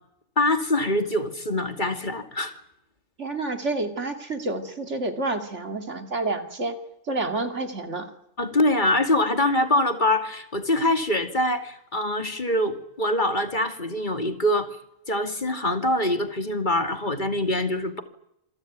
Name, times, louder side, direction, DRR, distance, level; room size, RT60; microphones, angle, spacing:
voice 1, 0.4-2.6 8.4-14.7 15.1-18.0, left 1 dB, 30° left, 6 dB, 2.6 m, -24 dB
voice 2, 3.2-6.7 7.1-8.1, right 2 dB, 50° right, 6 dB, 2.9 m, -29 dB
27.5 x 18.5 x 9.5 m, 0.77 s
omnidirectional pair, 1.5 m